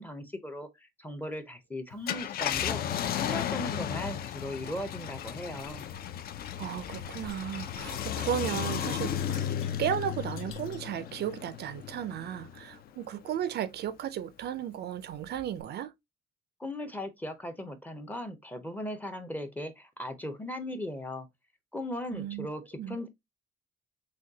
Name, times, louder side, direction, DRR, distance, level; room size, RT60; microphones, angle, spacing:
voice 1, 0.0-5.8 16.6-21.3 21.7-23.1, left 1 dB, 10° left, 0.6 m, -38 dB
Car, 1.9-12.7 13.2-13.3 15.4-15.6, left 10 dB, 50° left, 0.4 m, -34 dB
sound 1, 5.6-10.9, left 5 dB, 85° left, 0.7 m, -54 dB
voice 2, 6.6-9.5 9.8-15.9 22.1-22.5 22.8-23.0, right 10 dB, 55° right, 0.4 m, -34 dB
6.3 x 2.3 x 2.7 m
cardioid pair, 155°, 20 cm